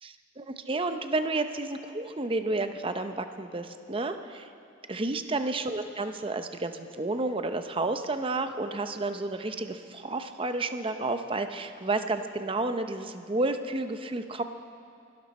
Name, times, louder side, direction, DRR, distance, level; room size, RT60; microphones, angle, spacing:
voice 1, 0.0-4.5 4.9-14.4, right 2 dB, 30° right, 8 dB, 0.8 m, -31 dB
23.5 x 12.0 x 4.3 m, 2.6 s
head